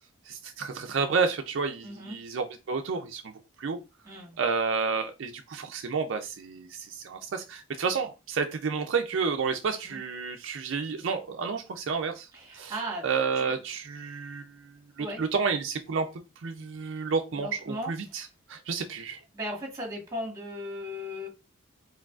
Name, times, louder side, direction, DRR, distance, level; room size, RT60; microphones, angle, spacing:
voice 1, 0.2-3.3 3.6-3.8 4.4-12.7 13.0-16.1 16.4-19.2, right 5 dB, 60° right, 0.4 m, -30 dB
voice 2, 1.8-2.2 4.0-4.3 9.8-10.0 12.3-13.0 13.3-13.5 15.0-15.2 17.3-18.2 19.3-21.3, equal, 15° right, 1.7 m, -37 dB
4.7 x 3.8 x 2.4 m
head